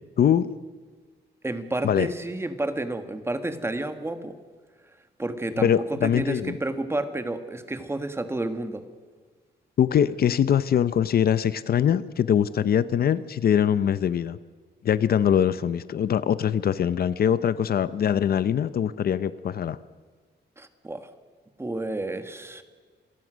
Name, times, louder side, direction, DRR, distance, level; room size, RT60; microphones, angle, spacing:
voice 1, 0.2-0.5 1.8-2.1 5.6-6.5 9.8-14.4 14.8-19.8, left 9 dB, 60° left, 15 dB, 0.7 m, -23 dB
voice 2, 1.4-4.4 5.2-8.8 20.6-21.1 21.6-22.6, right 2 dB, 15° right, 9 dB, 1.5 m, -30 dB
26.5 x 19.0 x 6.3 m, 1.5 s
wide cardioid pair, 160°, 18 cm